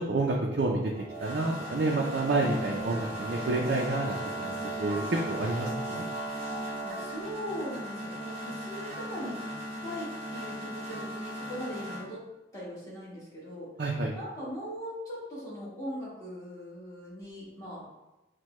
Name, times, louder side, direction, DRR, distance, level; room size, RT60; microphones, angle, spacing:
voice 1, 0.1-0.9 1.2-6.0 13.8-14.1, right 2 dB, 55° right, -1 dB, 0.4 m, -29 dB
sound 1, 0.9-12.0, right 1 dB, 35° right, 0.8 m, -37 dB
sound 2, 2.4-7.3, left 1 dB, 70° left, 1.1 m, -46 dB
voice 2, 6.4-12.2 12.5-13.7 14.1-17.8, equal, 15° left, -7 dB, 1.4 m, -40 dB
6.2 x 2.2 x 3.0 m, 1.0 s
head